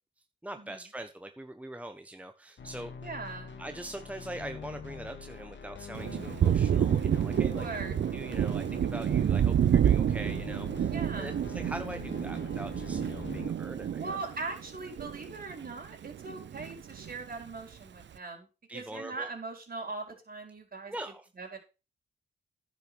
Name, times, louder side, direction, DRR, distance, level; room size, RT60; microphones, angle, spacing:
voice 1, 0.4-2.9 3.6-7.8 8.1-14.2 18.7-19.3 20.9-21.3, right 1 dB, 5° right, 7 dB, 1.2 m, -42 dB
sound 1, 2.6-13.5, left 6 dB, 70° left, 2.2 m, -44 dB
voice 2, 3.0-3.6 7.3-8.0 10.9-11.4 14.0-18.5 18.7-20.9 21.4-21.6, right 3 dB, 50° right, 2 dB, 5.0 m, -40 dB
Thunder, 5.9-15.7 16.0-17.2, right 9 dB, 65° right, 0.6 m, -29 dB
10.5 x 6.3 x 6.3 m, 0.30 s
cardioid pair, 65°, 20 cm